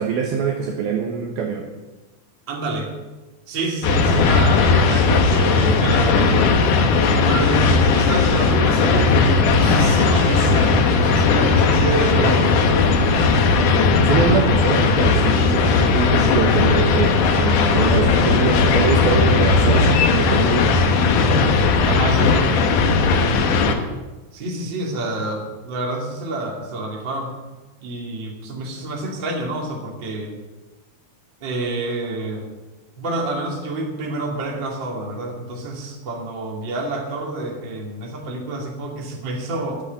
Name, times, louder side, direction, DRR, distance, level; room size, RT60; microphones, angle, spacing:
voice 1, 0.0-1.7 14.0-20.7, right 6 dB, 70° right, 2 dB, 2.6 m, -23 dB
voice 2, 2.5-2.9 3.5-6.4 7.0-12.8 21.9-22.7 24.3-27.3 27.8-30.3 31.4-32.4 33.0-39.8, right 2 dB, 30° right, -1 dB, 2.4 m, -28 dB
sound 1, 3.8-23.7, left 4 dB, 65° left, 2.1 m, -17 dB
11.5 x 8.9 x 9.4 m, 1.2 s
omnidirectional pair, 5.2 m